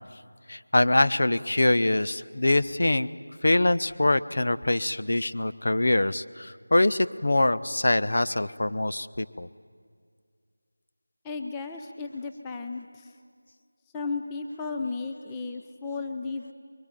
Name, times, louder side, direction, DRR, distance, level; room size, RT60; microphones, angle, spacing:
voice 1, 0.5-3.1 3.4-9.5, left 2 dB, 60° left, 12 dB, 0.8 m, -24 dB
voice 2, 11.2-13.1 13.9-16.5, left 4 dB, 10° left, 4 dB, 0.6 m, -34 dB
24.5 x 23.0 x 9.2 m, 2.1 s
figure-of-eight pair, 175°, 0 cm